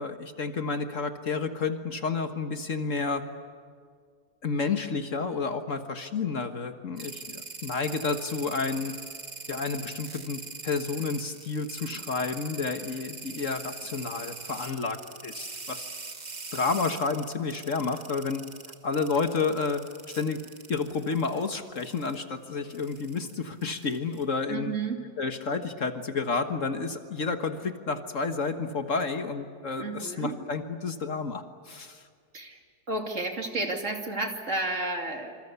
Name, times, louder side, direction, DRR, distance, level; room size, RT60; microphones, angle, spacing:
voice 1, 0.0-3.2 4.4-8.9 9.5-15.9 16.5-18.4 18.8-19.8 20.1-20.4 20.7-24.7 25.2-32.0, left 4 dB, 50° left, 7 dB, 1.7 m, -30 dB
sound 1, 7.0-21.5 21.8-22.2 22.7-24.2, right 3 dB, 30° right, 1.4 m, -42 dB
voice 2, 24.5-25.0 29.8-30.3 32.3-32.6 32.9-35.4, right 2 dB, 50° right, 3 dB, 3.0 m, -31 dB
27.0 x 26.0 x 8.2 m, 2.1 s
omnidirectional pair, 1.7 m